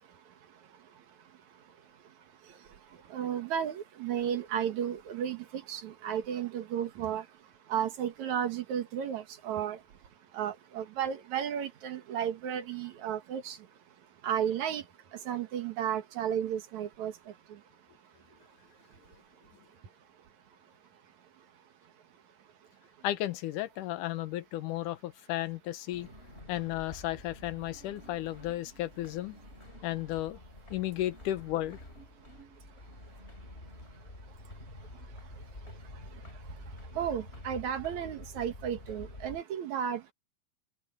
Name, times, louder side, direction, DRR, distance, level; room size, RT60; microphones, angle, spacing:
voice 1, 3.1-7.2 7.7-9.8 10.3-13.6 14.2-14.8 15.3-17.1 37.0-40.1, right 9 dB, 65° right, 2.7 m, -33 dB
voice 2, 23.0-26.1 26.5-29.4 29.8-30.4 30.7-31.8, left 14 dB, 80° left, 2.5 m, -34 dB
sound 1, 25.9-39.4, left 1 dB, 20° left, 4.2 m, -48 dB
open air
omnidirectional pair, 3.7 m